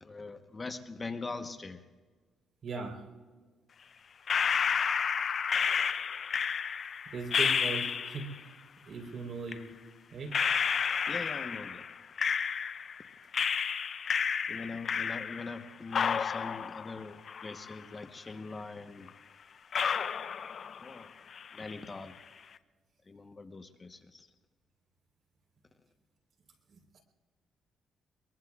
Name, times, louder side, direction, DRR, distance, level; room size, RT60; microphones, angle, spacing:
voice 1, 0.0-1.8 11.1-11.8 14.5-19.1 20.8-21.1 21.5-22.1 23.1-24.3, left 3 dB, 25° left, 7 dB, 1.0 m, -42 dB
voice 2, 2.6-3.0 7.1-8.3 8.9-9.6 10.1-10.3 26.9-27.0, right 4 dB, 55° right, 3 dB, 3.9 m, -38 dB
sound 1, 4.3-8.4 9.5-9.6 10.3-13.0 13.3-15.6 15.9-18.0 18.3-18.4 19.1-19.2 19.7-21.0 21.3-21.9, left 6 dB, 50° left, 0.6 m, -31 dB
23.5 x 22.5 x 2.4 m, 1.4 s
cardioid pair, 90°, 0 cm